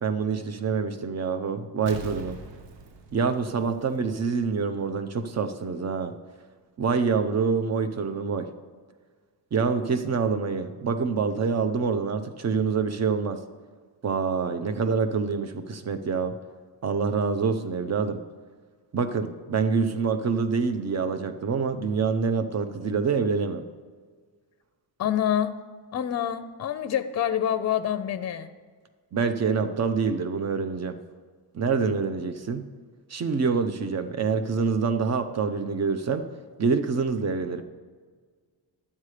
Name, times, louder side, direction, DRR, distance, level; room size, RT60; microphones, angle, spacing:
voice 1, 0.0-2.4 3.1-6.1 6.8-8.5 9.5-13.4 14.0-16.3 16.8-18.2 18.9-23.6 29.1-30.9 31.5-32.6 33.1-36.3 36.6-37.6, right 5 dB, 40° right, 9 dB, 0.7 m, -26 dB
Explosion, 1.9-4.5 4.8-4.9, right 3 dB, 80° right, 1.0 m, -42 dB
voice 2, 25.0-25.5 25.9-28.5, left 10 dB, 40° left, 10 dB, 0.5 m, -26 dB
11.0 x 8.5 x 5.0 m, 1.6 s
wide cardioid pair, 160°, 43 cm